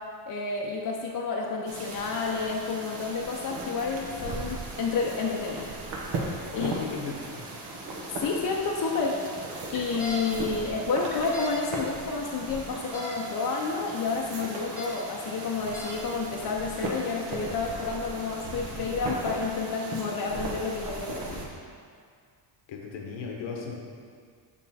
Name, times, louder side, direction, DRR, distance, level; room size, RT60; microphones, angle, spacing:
voice 1, 0.3-5.7 6.6-6.7 8.2-9.2 9.7-21.5, left 4 dB, 40° left, -1 dB, 0.6 m, -30 dB
sound 1, 1.7-21.5, right 2 dB, 60° right, 1.1 m, -37 dB
voice 2, 6.5-7.5 22.7-23.9, left 5 dB, 60° left, 0 dB, 1.0 m, -36 dB
sound 2, 9.7-10.2 11.1-11.5 12.7-13.1 14.6-14.9 15.5-16.0, right 2 dB, 5° right, 1.2 m, -37 dB
6.3 x 3.6 x 4.1 m, 2.1 s
cardioid pair, 100°, 49 cm